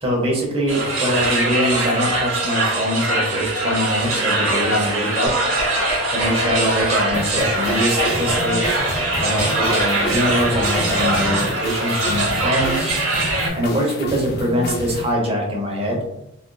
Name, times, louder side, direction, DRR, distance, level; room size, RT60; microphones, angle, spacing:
voice 1, 0.0-5.4 6.1-8.8 9.2-12.9 13.5-16.0, equal, 30° right, -1 dB, 0.8 m, -23 dB
sound 1, 0.7-13.5, right 2 dB, 75° right, 1.0 m, -22 dB
sound 2, 5.3-11.8, equal, 5° right, 1.5 m, -31 dB
sound 3, 7.1-15.1, equal, 50° left, 0.4 m, -30 dB
3.4 x 2.5 x 2.2 m, 0.81 s
head